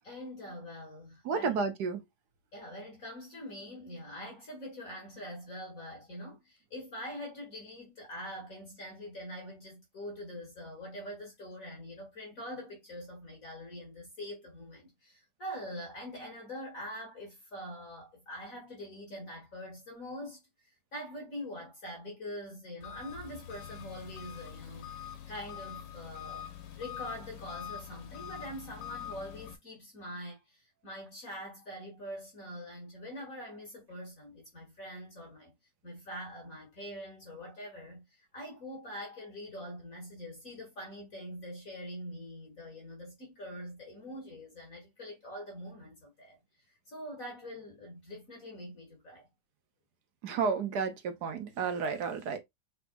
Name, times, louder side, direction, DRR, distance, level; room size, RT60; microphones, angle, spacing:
voice 1, 0.0-1.6 2.5-20.4 20.9-35.5 35.8-46.4 46.9-49.3, equal, 50° left, 2.2 m, -44 dB
voice 2, 1.2-2.0 50.2-52.4, right 5 dB, 65° right, 1.4 m, -31 dB
Engine, 22.8-29.6, left 10 dB, 80° left, 1.7 m, -44 dB
5.7 x 4.0 x 2.3 m
omnidirectional pair, 2.0 m